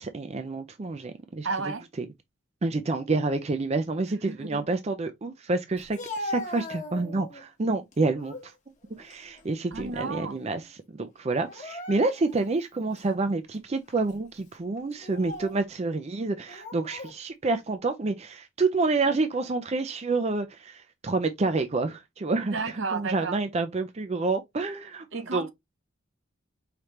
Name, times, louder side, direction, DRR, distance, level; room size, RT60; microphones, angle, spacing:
voice 1, 0.0-1.5 2.0-2.1 2.6-8.5 9.0-25.5, right 3 dB, 30° right, 0.4 m, -28 dB
voice 2, 1.4-1.8 4.3-4.6 9.7-10.4 22.5-23.4 25.1-25.5, right 4 dB, 60° right, 0.7 m, -32 dB
Speech, 5.8-7.4 7.9-8.5 8.9-10.2 10.4-10.6 11.4-12.4 13.0-13.1 13.9-14.1 14.9-15.6 16.5-17.2, left 1 dB, 35° left, 1.0 m, -39 dB
4.9 x 3.2 x 2.8 m
head